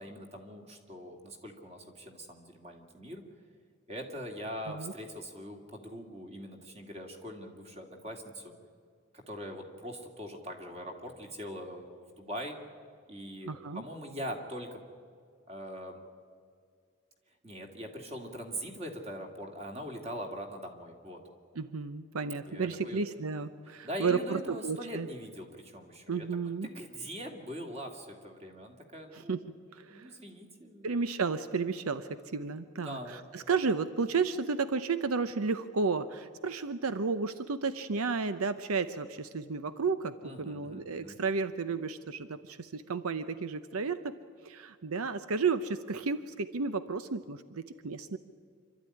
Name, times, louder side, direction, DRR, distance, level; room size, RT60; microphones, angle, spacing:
voice 1, 0.0-3.2 3.9-8.5 9.1-12.6 13.1-14.8 15.5-16.0 17.4-21.2 22.5-23.0 23.8-26.3 26.6-29.4 29.9-30.9 32.4-33.2 40.2-41.2, equal, 30° right, 3 dB, 2.5 m, -42 dB
voice 2, 13.5-13.8 21.6-25.1 26.1-26.7 29.1-29.4 29.7-30.1 30.8-44.1 44.4-48.2, right 4 dB, 85° right, 12 dB, 0.7 m, -32 dB
26.5 x 12.5 x 9.9 m, 2.3 s
head